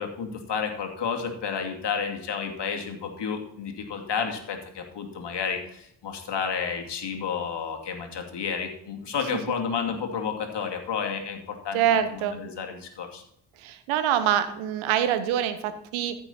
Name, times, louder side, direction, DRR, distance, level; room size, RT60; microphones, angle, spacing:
voice 1, 0.0-13.2, left 6 dB, 60° left, 3 dB, 2.5 m, -31 dB
voice 2, 11.7-12.4 13.6-16.2, right 10 dB, 75° right, 11 dB, 1.2 m, -25 dB
14.5 x 6.1 x 4.3 m, 0.71 s
hypercardioid pair, 40°, 48 cm